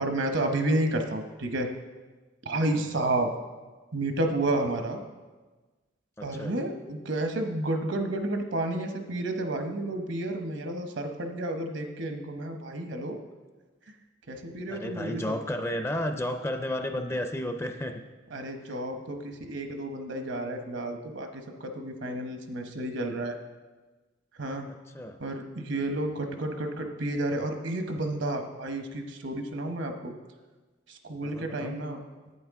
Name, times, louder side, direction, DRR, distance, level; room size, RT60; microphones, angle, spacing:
voice 1, 0.0-1.7 2.4-3.3 3.9-5.0 6.2-13.2 13.9-14.0 14.3-15.4 18.3-23.4 24.4-24.7 25.2-30.1 30.9-32.0, right 1 dB, 70° right, 6 dB, 0.9 m, -31 dB
voice 2, 2.5-2.9 6.2-6.5 14.7-18.0 24.7-25.2 31.2-31.8, left 1 dB, 15° left, 7 dB, 0.4 m, -33 dB
10.5 x 8.6 x 3.6 m, 1.3 s
head